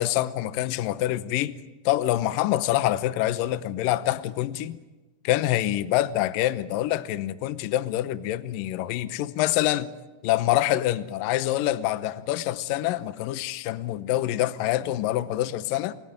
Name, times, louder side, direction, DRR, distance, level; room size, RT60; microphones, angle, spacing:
voice 1, 0.0-1.6 1.9-4.8 5.2-9.9 10.2-15.9, left 14 dB, 85° left, 1.9 m, -26 dB
29.0 x 18.0 x 9.3 m
omnidirectional pair, 5.3 m